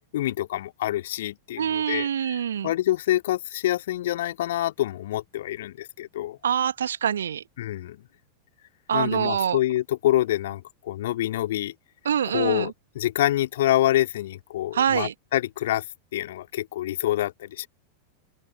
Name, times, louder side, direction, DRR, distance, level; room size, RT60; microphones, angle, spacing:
voice 1, 0.1-6.4 7.6-8.0 8.9-11.7 12.3-15.8 16.1-17.7, left 14 dB, 55° left, 3.0 m, -26 dB
voice 2, 1.6-2.7 6.4-7.4 8.9-9.6 12.1-12.7 14.7-15.1, right 8 dB, 65° right, 2.2 m, -25 dB
open air
figure-of-eight pair, 90°, 0 cm